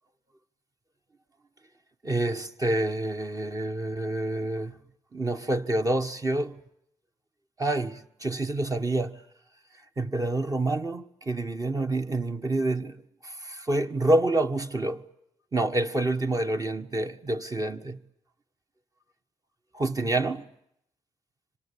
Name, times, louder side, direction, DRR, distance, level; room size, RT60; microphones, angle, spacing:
voice 1, 2.0-4.7 5.1-6.6 7.6-9.2 10.0-15.0 15.5-18.0 19.7-20.5, right 2 dB, 35° right, 1.6 m, -27 dB
26.5 x 25.5 x 8.7 m
cardioid pair, 65°, 11 cm